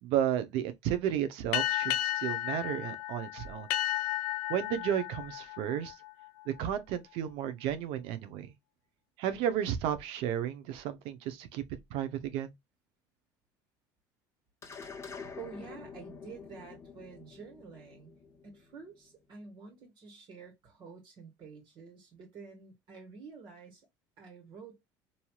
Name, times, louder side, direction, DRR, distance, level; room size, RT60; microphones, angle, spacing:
voice 1, 0.0-3.7 4.5-5.9 6.5-8.5 9.2-11.6 11.9-12.5, right 10 dB, 70° right, 0.6 m, -33 dB
sound 1, 1.5-6.6, left 15 dB, 85° left, 0.4 m, -34 dB
sound 2, 14.6-19.2, left 5 dB, 25° left, 0.9 m, -47 dB
voice 2, 15.4-18.1 18.4-23.9 24.2-24.8, right 5 dB, 55° right, 1.4 m, -49 dB
3.1 x 2.7 x 2.3 m
supercardioid pair, 100°, 10 cm